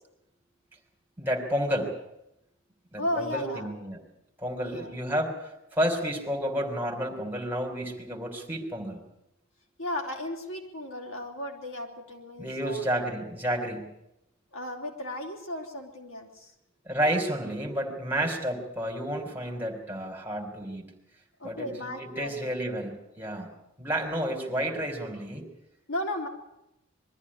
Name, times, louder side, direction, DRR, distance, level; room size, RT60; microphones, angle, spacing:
voice 1, 1.2-1.9 2.9-4.0 4.4-9.0 12.4-13.9 16.8-20.9 21.4-23.5 23.8-25.4, equal, 10° right, 1 dB, 3.4 m, -31 dB
voice 2, 3.0-3.7 4.6-5.0 9.8-12.8 14.5-16.5 21.4-22.4 24.3-24.5 25.9-26.3, left 1 dB, 75° left, 1 dB, 3.7 m, -35 dB
22.5 x 14.0 x 9.8 m, 0.85 s
head